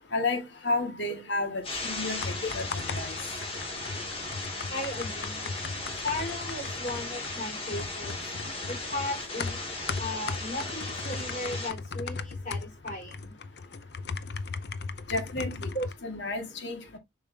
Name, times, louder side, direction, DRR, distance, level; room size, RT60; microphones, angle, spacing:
voice 1, 0.1-3.1 15.1-15.7 16.0-17.0, left 2 dB, 85° left, 2.0 m, -32 dB
sound 1, 1.6-11.7, left 2 dB, 30° left, 2.3 m, -36 dB
sound 2, 2.2-15.9, left 4 dB, 65° left, 0.6 m, -38 dB
voice 2, 4.7-5.5 6.0-8.1 8.7-9.6 10.0-13.3 15.7-15.9, left 1 dB, 45° left, 4.8 m, -36 dB
7.1 x 5.4 x 2.7 m
head